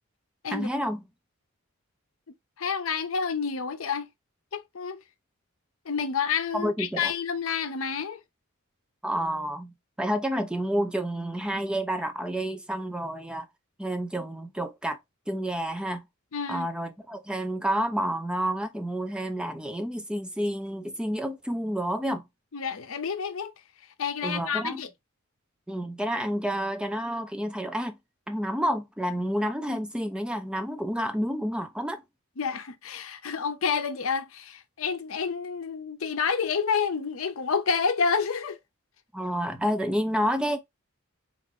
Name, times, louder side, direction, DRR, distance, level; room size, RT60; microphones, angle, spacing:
voice 1, 0.5-1.0 6.5-7.1 9.0-13.5 13.8-15.0 15.3-16.0 16.5-22.2 24.2-24.8 25.7-28.0 28.3-32.0 39.1-40.6, equal, 5° right, 0.4 m, -29 dB
voice 2, 2.6-4.1 4.5-5.0 5.9-8.2 16.3-16.7 22.5-23.5 24.0-24.9 32.4-38.6, left 6 dB, 70° left, 0.6 m, -29 dB
4.2 x 2.5 x 3.5 m
head